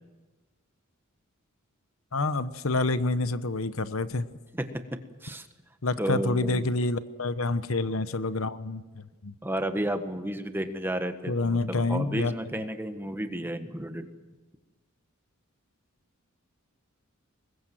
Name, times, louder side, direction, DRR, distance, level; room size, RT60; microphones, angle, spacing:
voice 1, 2.1-4.3 5.8-9.3 11.3-12.3, left 2 dB, 70° left, 12 dB, 1.0 m, -28 dB
voice 2, 6.0-6.6 9.4-14.1, right 1 dB, 10° right, 8 dB, 1.5 m, -32 dB
25.5 x 21.0 x 7.7 m, 1.2 s
head